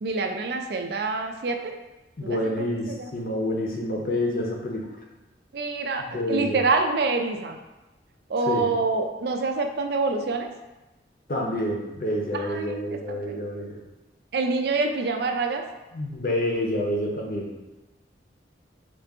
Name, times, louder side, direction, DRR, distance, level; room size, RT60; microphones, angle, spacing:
voice 1, 0.0-1.7 2.2-3.1 5.5-7.6 8.3-10.5 12.3-13.4 14.3-15.6, right 3 dB, 55° right, 4 dB, 0.4 m, -26 dB
voice 2, 2.2-4.9 6.0-6.6 8.5-8.7 11.3-13.8 15.9-17.7, left 1 dB, 50° left, -1 dB, 0.7 m, -28 dB
3.7 x 2.4 x 3.5 m, 1.1 s
head